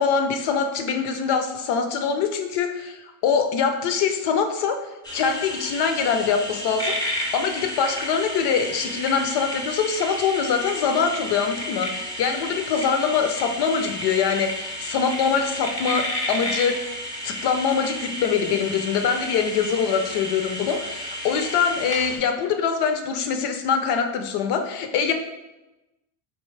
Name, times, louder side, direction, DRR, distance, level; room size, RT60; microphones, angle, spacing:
voice 1, 0.0-4.8 5.1-16.9 17.2-25.1, left 6 dB, 55° left, 7 dB, 0.6 m, -24 dB
sound 1, 5.0-22.2, equal, 10° left, 0.3 m, -32 dB
4.5 x 3.0 x 3.2 m, 1.0 s
cardioid pair, 160°, 48 cm